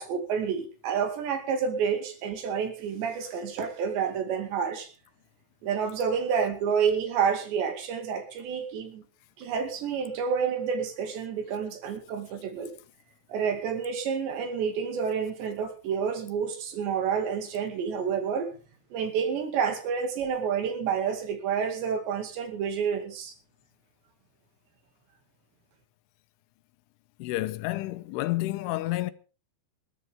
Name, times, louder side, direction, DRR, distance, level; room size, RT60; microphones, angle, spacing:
voice 1, 0.0-4.9 5.6-9.0 9.4-12.7 13.3-18.5 18.9-23.3, right 7 dB, 65° right, 4.3 m, -29 dB
voice 2, 27.2-29.1, left 17 dB, 80° left, 3.3 m, -30 dB
21.0 x 14.0 x 3.6 m
omnidirectional pair, 5.6 m